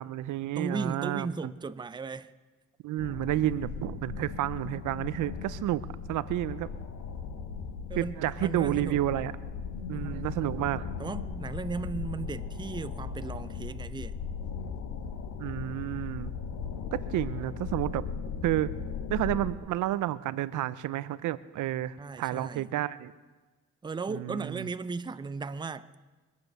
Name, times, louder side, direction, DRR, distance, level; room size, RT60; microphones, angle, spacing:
voice 1, 0.0-1.5 2.8-5.8 6.1-6.7 8.0-9.3 9.9-10.9 15.4-16.4 16.9-18.1 18.4-18.7 19.1-23.1 24.1-24.7, right 14 dB, 80° right, 0.6 m, -30 dB
voice 2, 0.6-2.3 7.9-9.0 9.9-10.3 11.0-14.2 22.0-22.7 23.8-25.9, right 4 dB, 15° right, 0.5 m, -36 dB
sound 1, 3.0-19.5, left 6 dB, 75° left, 1.5 m, -37 dB
23.5 x 8.4 x 6.6 m
cardioid pair, 90°, 30 cm